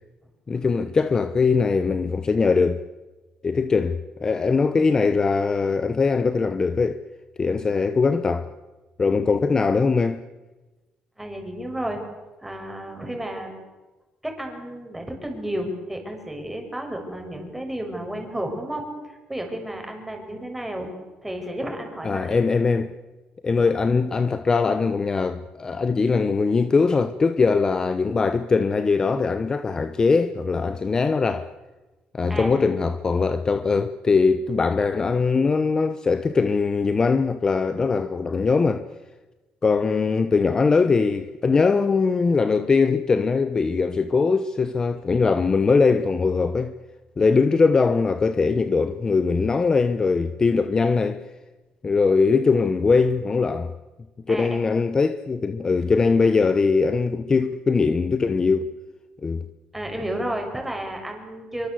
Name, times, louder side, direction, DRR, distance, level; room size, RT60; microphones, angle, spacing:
voice 1, 0.5-2.8 3.4-7.0 7.4-8.5 9.0-10.2 22.0-22.9 23.4-31.5 32.1-38.8 39.6-46.7 47.2-51.3 51.8-53.7 54.3-58.7 59.2-59.4, left 4 dB, 25° left, 1.1 m, -21 dB
voice 2, 11.2-12.0 12.4-13.5 14.2-20.9 21.2-22.4 23.6-23.7 32.3-32.8 54.3-54.6 59.7-61.7, right 1 dB, 5° right, 6.8 m, -32 dB
26.0 x 24.0 x 8.1 m
cardioid pair, 125°, 3 cm